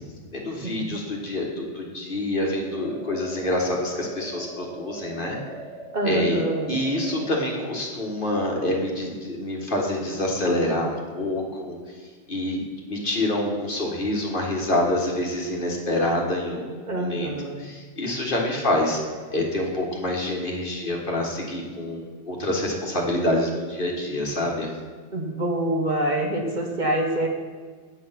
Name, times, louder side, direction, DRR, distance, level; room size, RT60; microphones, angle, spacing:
voice 1, 0.3-5.4 6.0-6.4 6.7-11.8 12.3-17.3 17.6-19.0 19.3-24.7, left 1 dB, 45° left, -1 dB, 1.8 m, -26 dB
sound 1, 2.6-7.7, right 2 dB, ahead, 1.9 m, -41 dB
voice 2, 5.9-6.8 16.9-17.6 25.1-27.3, right 1 dB, 40° right, 1 dB, 1.3 m, -25 dB
9.0 x 8.2 x 5.8 m, 1.5 s
omnidirectional pair, 1.2 m